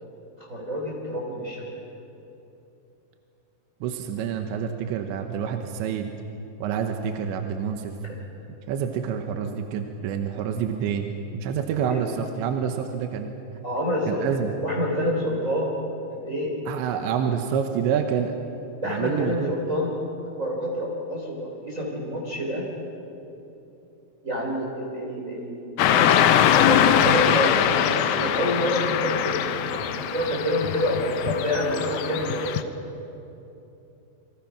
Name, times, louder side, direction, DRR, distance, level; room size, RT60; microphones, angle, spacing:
voice 1, 0.5-1.7 8.0-8.2 11.9-12.0 13.6-15.7 16.1-16.6 18.8-19.9 20.4-22.6 24.2-32.6, equal, 20° right, -3 dB, 3.9 m, -27 dB
voice 2, 3.8-6.1 6.6-7.9 8.7-13.3 14.1-14.5 16.7-18.3 18.8-19.5, right 8 dB, 80° right, 5 dB, 3.3 m, -27 dB
Car passing by / Traffic noise roadway noise, 25.8-32.6, left 10 dB, 80° left, 2.0 m, -22 dB
29.0 x 25.5 x 5.9 m, 2.9 s
omnidirectional pair, 5.3 m